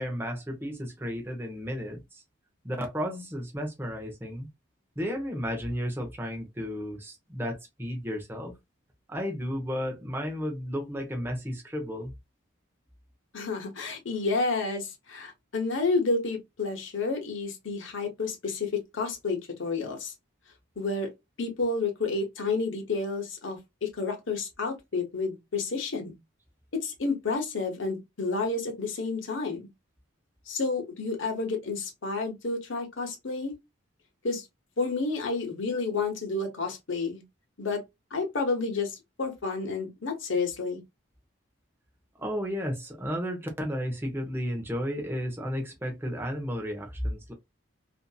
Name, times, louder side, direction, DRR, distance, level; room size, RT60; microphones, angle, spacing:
voice 1, 0.0-2.2 2.6-4.5 5.0-8.5 9.1-12.1 42.2-47.3, equal, 10° right, 0.6 m, -33 dB
voice 2, 13.3-20.1 20.8-21.1 21.4-26.1 26.7-29.7 30.5-33.6 34.2-34.4 34.8-37.2 37.6-37.8 38.1-40.8, left 3 dB, 70° left, 0.9 m, -30 dB
2.7 x 2.5 x 2.2 m
head